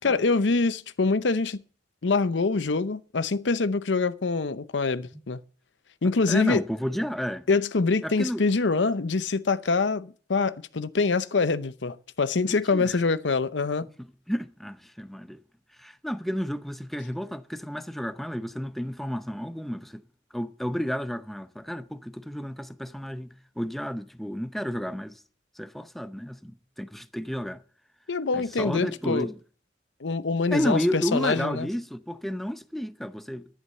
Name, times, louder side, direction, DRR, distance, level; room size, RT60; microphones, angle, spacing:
voice 1, 0.0-1.6 2.0-5.4 6.0-6.6 7.5-13.9 28.1-29.3 30.0-31.7, left 4 dB, 80° left, 0.7 m, -25 dB
voice 2, 6.3-7.5 8.0-8.4 12.5-13.0 14.0-15.4 15.8-20.0 20.3-25.2 25.6-27.6 28.3-29.4 30.5-33.5, equal, ahead, 0.6 m, -31 dB
11.0 x 11.0 x 6.7 m
head